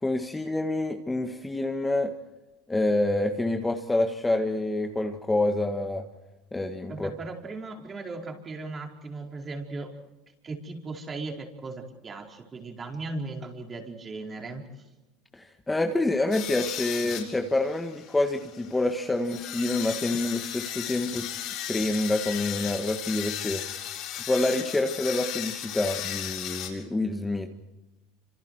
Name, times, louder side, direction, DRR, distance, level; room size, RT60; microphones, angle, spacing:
voice 1, 0.0-2.1 2.7-6.0 6.5-7.1 15.3-21.3 21.7-23.6 24.2-27.6, left 2 dB, 10° left, 4 dB, 1.6 m, -27 dB
voice 2, 6.9-10.0 10.4-14.9, right 3 dB, 25° right, 1 dB, 4.8 m, -37 dB
sound 1, 16.3-26.7, left 10 dB, 55° left, 7.0 m, -36 dB
28.5 x 27.0 x 4.6 m, 1.0 s
supercardioid pair, 105°, 0 cm